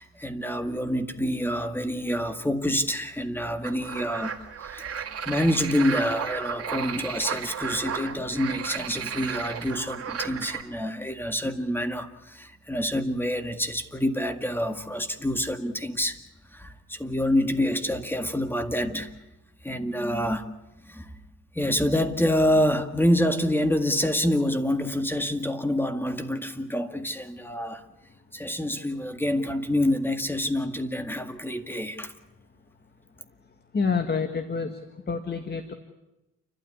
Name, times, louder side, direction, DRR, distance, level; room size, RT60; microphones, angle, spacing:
voice 1, 0.0-16.2 16.5-19.1 19.6-20.5 20.9-21.1 21.5-27.8 28.3-32.1, left 1 dB, 5° left, 1.9 m, -27 dB
sound 1, 3.6-10.6, right 7 dB, 50° right, 2.6 m, -34 dB
voice 2, 33.7-34.8 35.1-35.7, left 5 dB, 35° left, 1.8 m, -27 dB
29.5 x 12.5 x 9.8 m
cardioid pair, 90°, 30 cm